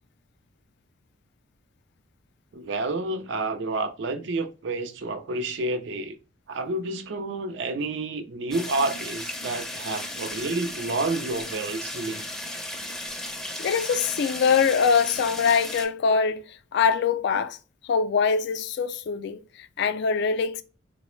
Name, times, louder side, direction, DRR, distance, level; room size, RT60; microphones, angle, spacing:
voice 1, 2.5-6.2 6.5-12.2, right 2 dB, 65° right, 0.4 m, -29 dB
sound 1, 8.5-15.9, left 1 dB, 5° left, 0.5 m, -35 dB
voice 2, 13.6-17.6 17.8-20.6, left 6 dB, 60° left, 0.3 m, -23 dB
3.8 x 2.0 x 3.0 m
head